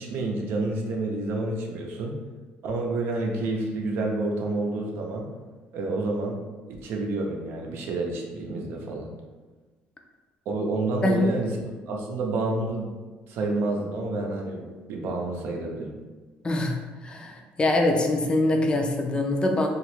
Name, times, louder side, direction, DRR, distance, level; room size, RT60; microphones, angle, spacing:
voice 1, 0.0-2.2 2.6-5.3 5.7-6.4 6.8-9.1 10.5-11.6 11.9-12.9 13.3-16.0, right 2 dB, 75° right, 1 dB, 0.6 m, -29 dB
voice 2, 16.4-16.8 17.0-19.7, left 2 dB, 25° left, 2 dB, 0.4 m, -23 dB
2.9 x 2.4 x 3.1 m, 1.3 s
cardioid pair, 90°, 4 cm